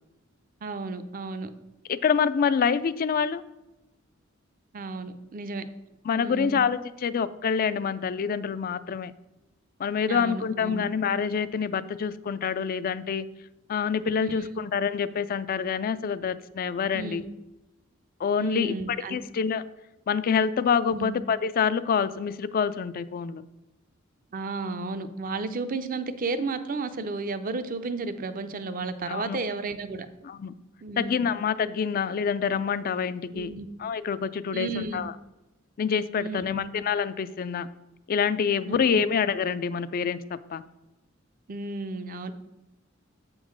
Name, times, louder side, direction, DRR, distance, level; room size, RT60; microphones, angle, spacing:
voice 1, 0.6-1.5 4.7-5.7 6.1-6.6 10.1-10.8 14.2-14.5 16.9-17.3 18.4-19.2 20.9-21.2 24.3-30.1 30.8-31.3 33.3-33.7 34.5-35.1 36.2-36.7 38.7-39.1 41.5-42.3, right 3 dB, 45° right, 11 dB, 0.5 m, -33 dB
voice 2, 1.9-3.4 6.1-9.1 9.8-13.3 13.7-17.2 18.2-18.7 19.1-19.6 20.1-23.4 29.1-29.4 30.2-30.5 31.0-33.5 33.8-35.1 35.8-37.7 38.1-40.2 40.5-40.6, left 6 dB, 45° left, 15 dB, 0.3 m, -26 dB
7.9 x 3.8 x 6.1 m, 0.99 s
head